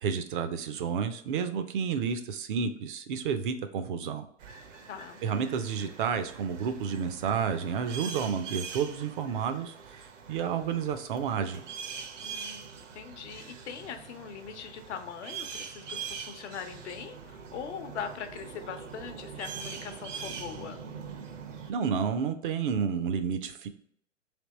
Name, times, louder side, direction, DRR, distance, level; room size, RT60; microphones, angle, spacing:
voice 1, 0.0-4.3 5.2-11.6 21.7-23.7, right 6 dB, 45° right, 9 dB, 0.4 m, -30 dB
sound 1, 4.4-21.7, right 6 dB, 75° right, 0.8 m, -43 dB
voice 2, 4.9-5.2 12.2-20.8, left 7 dB, 65° left, 7 dB, 0.7 m, -41 dB
3.4 x 2.8 x 4.0 m, 0.66 s
hypercardioid pair, 125°, 37 cm